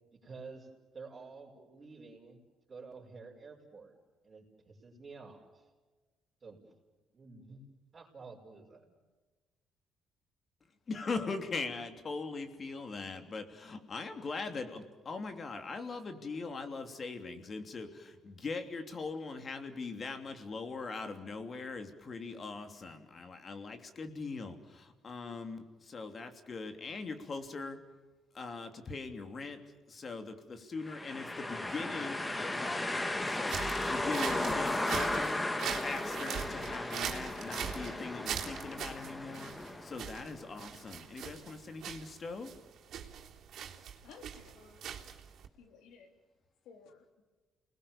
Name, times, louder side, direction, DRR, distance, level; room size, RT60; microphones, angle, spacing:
voice 1, 0.1-0.7 0.9-2.4 2.7-3.9 4.2-5.7 6.4-6.6 7.1-7.6 7.9-8.9, right 4 dB, 35° right, -3 dB, 5.7 m, -50 dB
voice 2, 10.9-27.8 28.3-29.6 29.9-35.4 35.7-42.5, left 4 dB, 40° left, 7 dB, 3.1 m, -41 dB
sound 1, 30.9-40.7, left 2 dB, 15° left, 1.8 m, -36 dB
sound 2, 33.4-45.5, right 9 dB, 70° right, 3.4 m, -41 dB
voice 3, 44.0-44.8 45.6-46.1 46.6-47.2, left 6 dB, 85° left, 6 dB, 3.6 m, -56 dB
29.5 x 20.5 x 7.3 m, 1.3 s
cardioid pair, 95°, 0 cm